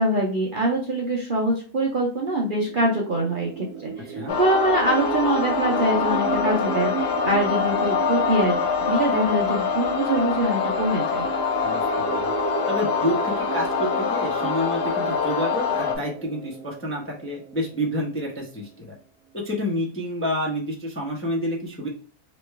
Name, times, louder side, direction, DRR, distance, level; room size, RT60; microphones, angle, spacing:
voice 1, 0.0-8.6 8.8-11.2, right 1 dB, 50° right, -2 dB, 0.6 m, -24 dB
sound 1, 2.6-18.2, right 8 dB, 80° right, 1.1 m, -34 dB
sound 2, 4.3-15.9, left 6 dB, 90° left, 1.3 m, -25 dB
voice 2, 11.6-12.3 12.7-18.9 19.3-21.9, equal, 10° left, -2 dB, 0.6 m, -29 dB
3.1 x 3.1 x 3.2 m, 0.40 s
omnidirectional pair, 1.7 m